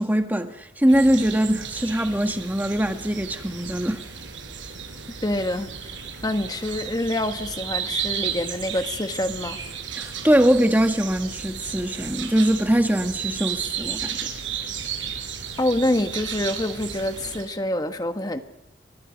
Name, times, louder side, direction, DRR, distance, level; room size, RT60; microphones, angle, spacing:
voice 1, 0.0-4.0 9.9-14.3, equal, 10° right, 1.5 m, -22 dB
sound 1, 0.9-17.4, right 7 dB, 85° right, 4.5 m, -34 dB
voice 2, 5.2-5.7 6.2-9.6 15.6-18.4, left 1 dB, 20° left, 1.3 m, -26 dB
30.0 x 23.0 x 5.2 m
head